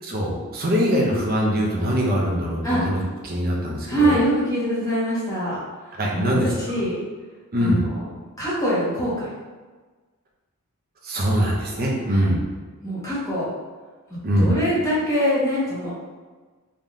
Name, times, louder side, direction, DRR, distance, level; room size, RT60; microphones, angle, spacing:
voice 1, 0.0-4.2 6.0-6.5 7.5-7.9 11.0-12.4 14.2-14.5, equal, 45° right, -2 dB, 0.8 m, -22 dB
voice 2, 3.9-5.6 6.1-6.9 7.6-8.1 8.4-9.3 12.1-12.3 12.8-13.5 14.1-15.9, equal, 15° left, -10 dB, 1.4 m, -24 dB
3.6 x 2.9 x 3.7 m, 1.4 s
head